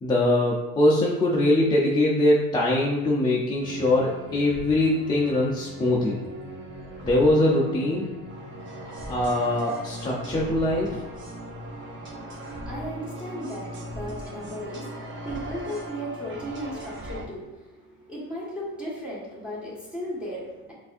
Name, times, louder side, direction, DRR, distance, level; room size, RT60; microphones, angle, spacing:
voice 1, 0.0-6.2 7.0-8.1 9.1-11.0, left 1 dB, 15° left, -5 dB, 0.4 m, -22 dB
sound 1, 3.6-17.2, equal, 35° right, 0.9 m, -39 dB
voice 2, 11.2-20.7, equal, 5° right, -7 dB, 1.3 m, -36 dB
6.5 x 2.6 x 2.5 m, 1.1 s
cardioid pair, 155°, 34 cm